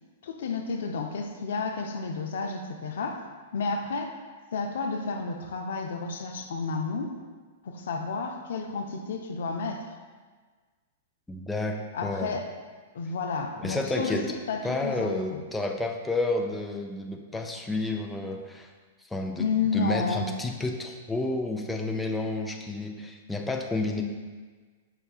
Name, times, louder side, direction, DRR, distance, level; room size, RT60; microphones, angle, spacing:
voice 1, 0.2-3.2 3.5-4.1 4.5-7.2 7.6-9.9 11.9-12.5 12.9-15.4 19.4-20.3, left 4 dB, 70° left, 4 dB, 0.4 m, -31 dB
voice 2, 11.3-12.3 13.6-14.3 14.6-18.7 19.0-19.5 19.7-24.0, left 2 dB, 5° left, 2 dB, 0.4 m, -30 dB
6.6 x 2.3 x 2.3 m, 1.4 s
hypercardioid pair, 120°, 0 cm